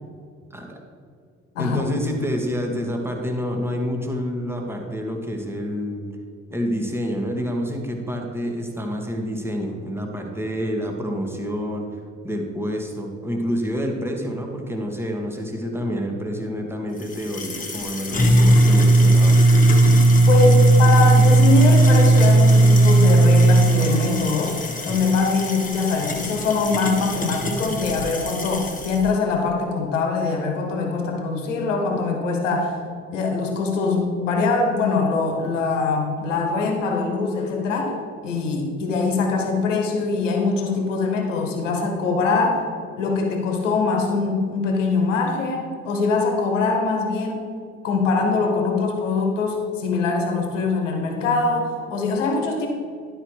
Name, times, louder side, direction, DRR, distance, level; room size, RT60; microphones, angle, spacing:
voice 1, 0.5-0.8 1.6-6.1 6.5-11.9 12.2-19.5 24.9-25.0, equal, 5° right, 1 dB, 1.6 m, -28 dB
sound 1, 17.0-29.0, right 2 dB, 20° left, 1.3 m, -17 dB
voice 2, 20.3-32.8 33.1-42.6 43.0-47.4 47.8-52.7, left 3 dB, 80° left, 2 dB, 1.2 m, -23 dB
11.5 x 4.9 x 4.7 m, 2.2 s
figure-of-eight pair, 50°, 37 cm